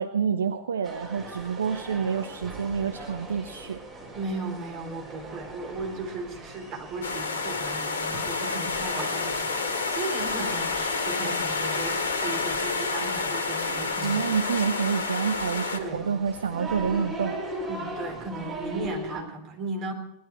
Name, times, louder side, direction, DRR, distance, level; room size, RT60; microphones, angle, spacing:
voice 1, 0.0-3.8 14.0-17.4, right 6 dB, 70° right, 9 dB, 0.8 m, -28 dB
sound 1, 0.8-19.2, right 1 dB, 20° right, 4.1 m, -40 dB
voice 2, 4.1-14.2 15.8-16.1 17.7-19.9, right 3 dB, 35° right, 2 dB, 3.8 m, -36 dB
sound 2, 7.0-15.8, left 4 dB, 65° left, 1.8 m, -29 dB
19.5 x 12.0 x 4.4 m, 0.84 s
figure-of-eight pair, 90°, 0 cm